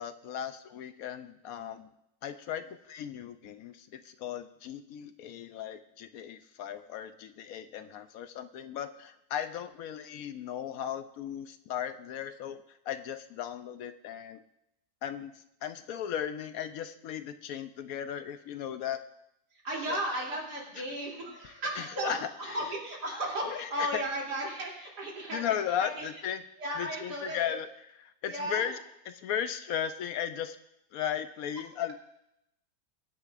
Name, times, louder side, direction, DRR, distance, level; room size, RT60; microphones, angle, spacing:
voice 1, 0.0-1.9 2.2-14.4 15.0-19.0 19.9-20.0 21.4-22.6 23.4-24.0 25.3-26.4 26.8-27.7 28.2-28.8 29.1-30.6 30.9-31.9, left 9 dB, 70° left, 10 dB, 1.0 m, -36 dB
voice 2, 19.5-25.4 25.8-26.1 26.6-27.4 28.3-28.6, right 1 dB, 85° right, -4 dB, 3.5 m, -35 dB
21.5 x 9.9 x 2.5 m, 0.81 s
omnidirectional pair, 1.7 m